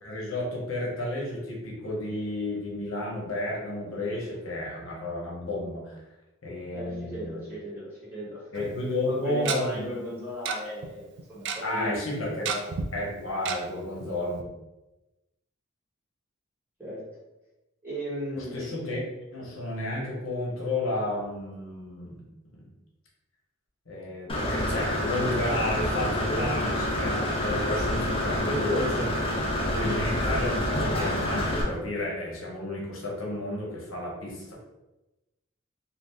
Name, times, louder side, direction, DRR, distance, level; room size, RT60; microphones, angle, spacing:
voice 1, 0.0-6.0 6.4-7.4 8.5-9.9 11.6-12.5 12.9-14.5 18.4-19.0 19.3-22.2 22.5-22.7 23.9-29.1 29.7-34.5, left 1 dB, 85° left, -4 dB, 0.9 m, -32 dB
voice 2, 6.7-8.6 9.1-12.0 12.5-12.7 16.8-17.0 17.8-18.8, equal, 10° right, -9 dB, 1.3 m, -36 dB
Tick-tock, 8.6-8.7 9.5-9.6 10.5-10.6 10.8-10.9 11.2-11.6 12.5-12.9 13.5-13.6 14.0-14.1 14.4-14.5, right 6 dB, 60° right, 0.3 m, -30 dB
Engine / Mechanisms, 24.3-31.6, left 1 dB, 25° left, 0.6 m, -27 dB
2.6 x 2.4 x 3.4 m, 1.0 s
head